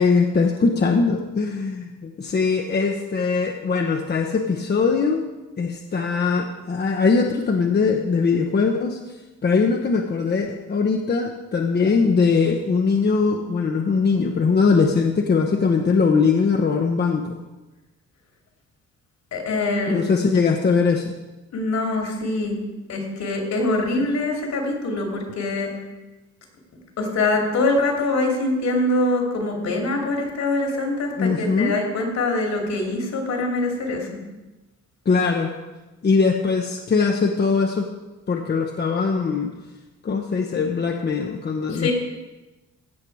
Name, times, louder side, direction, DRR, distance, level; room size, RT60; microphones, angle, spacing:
voice 1, 0.0-5.3 5.6-9.0 9.4-17.4 19.9-21.1 24.0-24.1 31.2-31.7 35.1-35.5 36.0-37.9 38.3-39.5 40.0-41.9, left 4 dB, 35° left, 3 dB, 1.0 m, -21 dB
voice 2, 19.3-20.0 21.5-22.6 22.9-25.7 27.0-34.1 41.7-41.9, left 2 dB, 65° left, 1 dB, 2.9 m, -24 dB
16.0 x 5.9 x 4.8 m, 1.1 s
cardioid pair, 90°, 30 cm